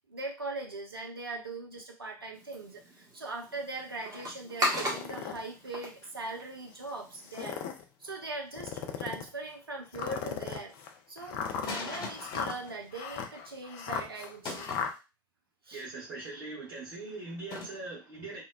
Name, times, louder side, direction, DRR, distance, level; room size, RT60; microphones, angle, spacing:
voice 1, 0.1-7.6 8.0-10.7 11.1-14.7 15.6-15.8, right 3 dB, 90° right, 2 dB, 0.4 m, -40 dB
sound 1, 2.3-7.4, equal, 30° right, 1.0 m, -37 dB
sound 2, 4.7-5.4 6.0-6.1 7.2-7.8 8.5-9.3 9.9-14.9, left 7 dB, 55° left, 0.4 m, -37 dB
sound 3, 11.5-13.5 14.4-14.9 17.5-17.7, left 3 dB, 40° left, 1.0 m, -40 dB
voice 2, 15.7-18.4, right 3 dB, 50° right, -8 dB, 1.3 m, -41 dB
2.7 x 2.1 x 2.3 m, 0.27 s
figure-of-eight pair, 70°, 12 cm